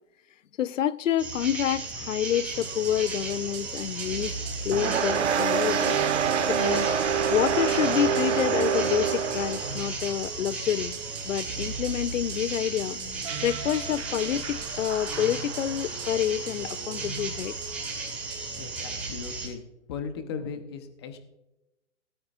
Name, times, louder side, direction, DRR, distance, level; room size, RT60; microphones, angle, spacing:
voice 1, 0.6-4.3 4.6-6.0 6.5-6.9 7.3-11.0 11.3-13.0 13.4-17.5, left 10 dB, 85° left, 0.6 m, -28 dB
sound 1, 1.2-19.5, right 3 dB, 5° right, 1.8 m, -35 dB
sound 2, 2.5-19.5, right 6 dB, 25° right, 1.5 m, -40 dB
sound 3, 4.7-9.8, right 7 dB, 65° right, 1.4 m, -25 dB
voice 2, 18.6-19.6 19.9-21.2, left 6 dB, 20° left, 1.0 m, -37 dB
16.5 x 13.5 x 2.6 m
hypercardioid pair, 170°, 37 cm